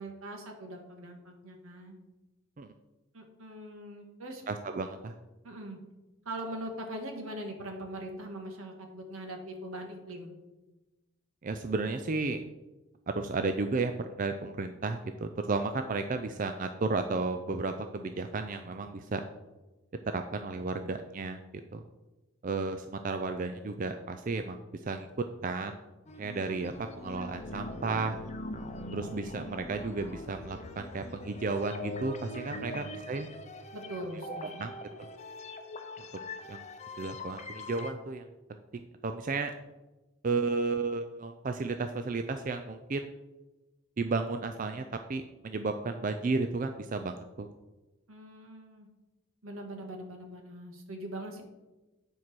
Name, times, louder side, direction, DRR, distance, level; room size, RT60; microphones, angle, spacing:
voice 1, 0.0-2.0 3.1-4.5 5.4-5.8 6.2-10.3 32.5-33.0 33.7-34.6 48.1-48.9 49.4-51.4, right 1 dB, 80° right, 3 dB, 1.8 m, -42 dB
voice 2, 4.5-5.2 11.4-12.4 13.2-13.9 14.2-19.2 20.1-21.4 21.7-21.8 22.4-25.8 26.2-28.2 28.9-33.3 34.3-34.7 35.0-35.1 36.5-36.6 37.0-38.3 38.7-39.5 40.2-43.1 44.0-44.8 45.1-47.5, right 3 dB, 40° right, 7 dB, 0.4 m, -33 dB
sound 1, 26.1-37.9, left 1 dB, 30° left, 0.7 m, -42 dB
9.8 x 4.6 x 6.0 m, 1.1 s
head